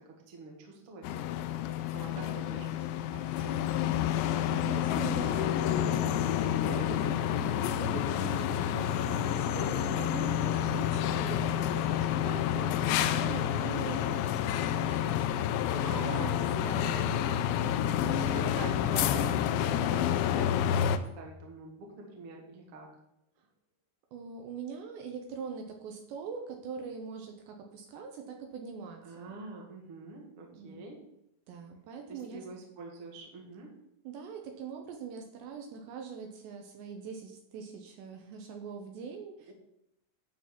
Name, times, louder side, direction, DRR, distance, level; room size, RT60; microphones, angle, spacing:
voice 1, 0.3-1.0 1.3-3.0 3.4-3.7 13.0-13.6 15.8-16.4 17.8-22.9 29.0-31.0 32.1-33.7 39.5-39.6, right 3 dB, 55° right, -1 dB, 1.5 m, -45 dB
sound 1, 1.0-21.0, left 10 dB, 85° left, 2.6 m, -29 dB
voice 2, 2.2-2.7 4.5-17.2 24.1-29.4 30.5-31.0 31.5-32.5 34.0-39.5, right 6 dB, 75° right, 3 dB, 2.8 m, -43 dB
12.0 x 4.1 x 7.2 m, 0.82 s
omnidirectional pair, 5.8 m